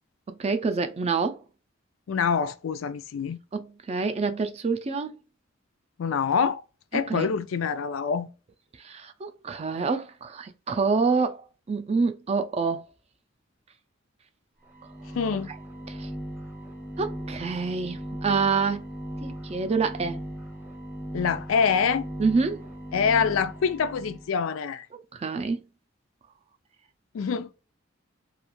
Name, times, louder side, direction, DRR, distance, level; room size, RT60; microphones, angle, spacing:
voice 1, 0.3-1.4 3.5-5.2 7.1-7.3 8.8-12.8 15.9-16.1 17.0-18.9 19.2-20.2 22.2-22.6 24.9-25.6, right 4 dB, 30° right, 0.4 m, -27 dB
voice 2, 2.1-3.4 6.0-6.6 6.9-8.3 15.1-15.5 21.1-22.1 22.9-24.9 27.1-27.5, left 6 dB, 80° left, 0.4 m, -25 dB
sound 1, 14.7-24.3, equal, 10° right, 0.7 m, -38 dB
2.4 x 2.3 x 2.9 m
head